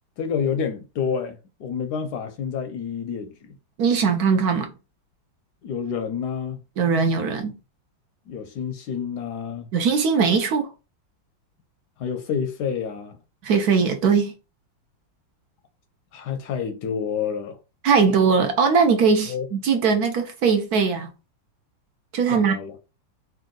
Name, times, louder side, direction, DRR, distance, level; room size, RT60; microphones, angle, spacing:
voice 1, 0.2-3.6 5.6-6.6 8.3-9.7 12.0-13.2 16.1-17.6 19.3-19.5 22.3-22.7, left 7 dB, 75° left, 1.0 m, -28 dB
voice 2, 3.8-4.7 6.8-7.5 9.7-10.7 13.4-14.3 17.8-21.1 22.1-22.5, right 5 dB, 65° right, 1.0 m, -20 dB
3.5 x 2.6 x 3.8 m
omnidirectional pair, 2.1 m